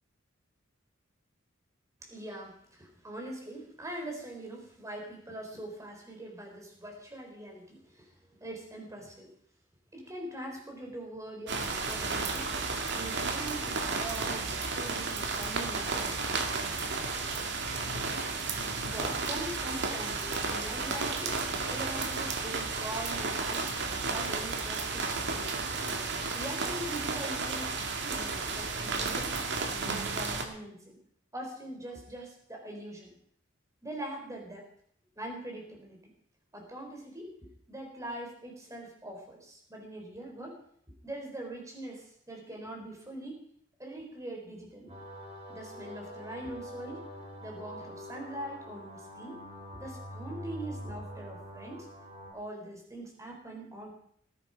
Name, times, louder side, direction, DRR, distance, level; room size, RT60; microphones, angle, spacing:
voice 1, 2.0-8.1 8.4-9.3 9.9-12.5 12.9-16.6 18.8-21.3 21.7-23.7 24.1-25.8 26.3-29.3 29.7-31.0 31.3-33.1 33.8-34.7 35.2-36.0 36.5-40.6 41.0-43.4 43.8-44.9 45.5-47.0 47.4-49.4 49.7-51.9 52.3-53.9, right 1 dB, 15° right, 1 dB, 4.2 m, -42 dB
sound 1, 11.5-30.4, right 4 dB, 60° right, 2.2 m, -33 dB
sound 2, 44.9-52.3, equal, 35° right, 5.4 m, -44 dB
18.5 x 10.5 x 5.3 m, 0.66 s
head